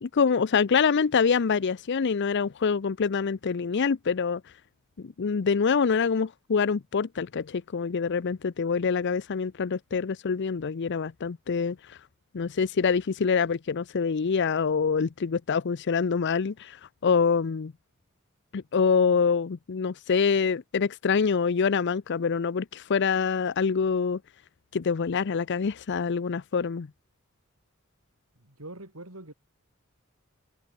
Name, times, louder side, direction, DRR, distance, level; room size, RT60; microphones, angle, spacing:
voice 1, 0.0-4.4 5.0-12.0 12.3-17.7 18.5-24.2 24.7-26.9, left 5 dB, 55° left, 0.5 m, -25 dB
voice 2, 28.4-29.3, right 2 dB, 80° right, 5.5 m, -43 dB
head